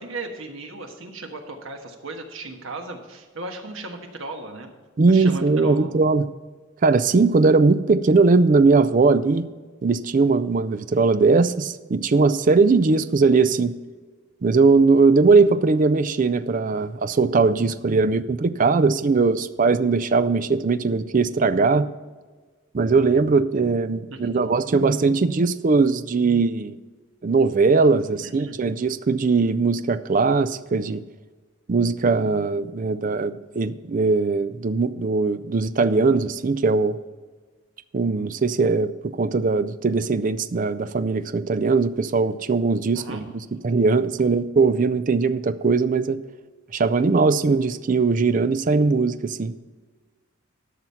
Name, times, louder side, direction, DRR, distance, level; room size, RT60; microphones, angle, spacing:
voice 1, 0.0-4.7 5.1-5.9 24.1-24.5 28.1-28.6 42.9-43.3, right 2 dB, 75° right, 4 dB, 1.4 m, -36 dB
voice 2, 5.0-6.3 6.8-9.5 9.8-13.7 14.4-21.9 22.7-26.8 27.2-31.0 31.7-37.0 37.9-43.3 43.6-46.2 46.7-49.5, right 4 dB, 40° right, 13 dB, 0.4 m, -20 dB
12.0 x 6.0 x 5.7 m, 1.4 s
head